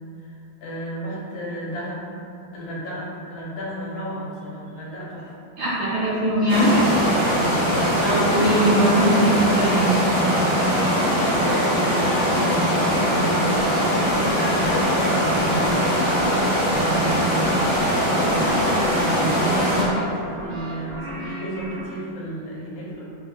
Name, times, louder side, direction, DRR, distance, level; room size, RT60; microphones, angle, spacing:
voice 1, 0.2-2.1 2.5-5.3 6.5-7.9 8.4-8.8 11.4-15.9 16.3-23.1, right 1 dB, 75° left, -5 dB, 1.3 m, -33 dB
voice 2, 5.6-6.9 8.0-10.0 21.0-21.4, right 1 dB, 80° right, -11 dB, 1.7 m, -21 dB
sound 1, 6.5-19.8, equal, 45° left, 1.0 m, -21 dB
sound 2, 13.5-21.9, equal, 60° right, 0.8 m, -35 dB
3.5 x 2.8 x 2.3 m, 2.6 s
omnidirectional pair, 2.4 m